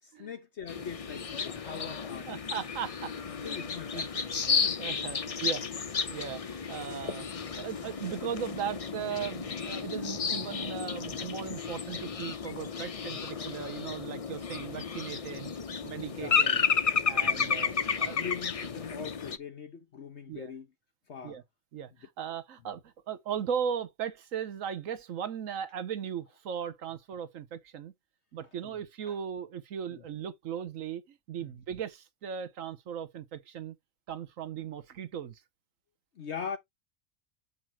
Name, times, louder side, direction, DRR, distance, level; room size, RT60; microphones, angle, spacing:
voice 1, 0.0-2.3 3.3-4.8 16.1-16.4 18.1-20.7 21.1-21.4 28.6-28.8 29.1-29.2 29.9-30.0 31.4-31.5 36.2-36.6, left 7 dB, 60° left, 1.2 m, -42 dB
sound 1, 0.7-19.4, left 6 dB, 40° left, 0.6 m, -32 dB
voice 2, 2.3-3.1 3.4-5.6 6.1-15.5 15.8-16.6 17.0-18.2 20.3-20.5 21.2-21.4 21.7-27.9 28.3-33.7 34.1-35.4, right 8 dB, 85° right, 1.4 m, -38 dB
8.4 x 2.9 x 6.1 m
omnidirectional pair, 1.3 m